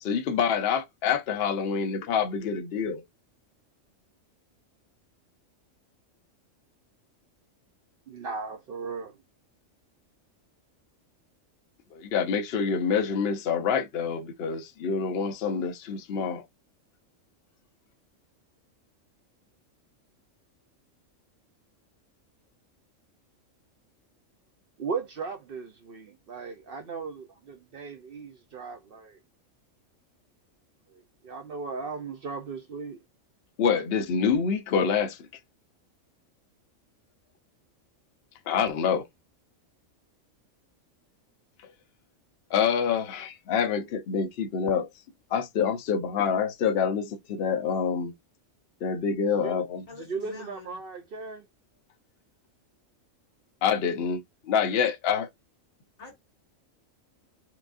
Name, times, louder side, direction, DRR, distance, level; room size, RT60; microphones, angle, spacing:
voice 1, 0.0-3.0 11.9-16.4 33.6-35.2 38.5-39.1 42.5-44.9 45.3-48.1 48.8-49.8 53.6-55.3, left 6 dB, 55° left, 0.8 m, -26 dB
voice 2, 8.1-9.2 24.8-29.2 30.9-33.0 49.4-49.7 50.0-51.5, right 4 dB, 60° right, 0.6 m, -37 dB
voice 3, 49.9-50.8 56.0-56.1, left 4 dB, 85° left, 2.3 m, -45 dB
6.0 x 2.4 x 2.5 m
omnidirectional pair, 1.4 m